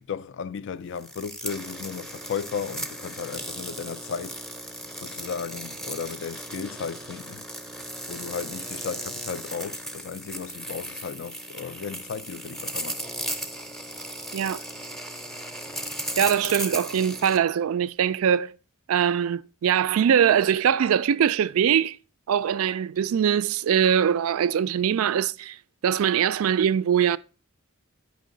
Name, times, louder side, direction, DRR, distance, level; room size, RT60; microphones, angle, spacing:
voice 1, 0.1-4.4 5.0-7.4 8.1-13.0, left 6 dB, 60° left, 0.4 m, -35 dB
sound 1, 1.0-17.4, right 1 dB, ahead, 0.6 m, -36 dB
voice 2, 16.2-18.6 18.9-22.0 22.3-25.6 25.8-27.2, right 8 dB, 70° right, 0.3 m, -22 dB
9.2 x 5.4 x 3.8 m
head